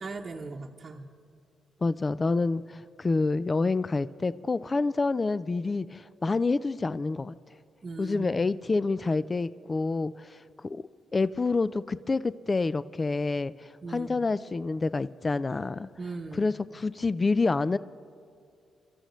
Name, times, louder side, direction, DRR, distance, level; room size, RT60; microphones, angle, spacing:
voice 1, 0.0-1.1 7.8-8.4 13.8-14.3 16.0-16.5, right 3 dB, 45° right, -1 dB, 0.9 m, -39 dB
voice 2, 1.8-7.3 8.0-10.4 10.6-10.8 11.1-15.9 16.3-17.8, left 3 dB, 35° left, 16 dB, 0.4 m, -28 dB
25.0 x 13.5 x 3.1 m, 2.4 s
cardioid pair, 65°, 0 cm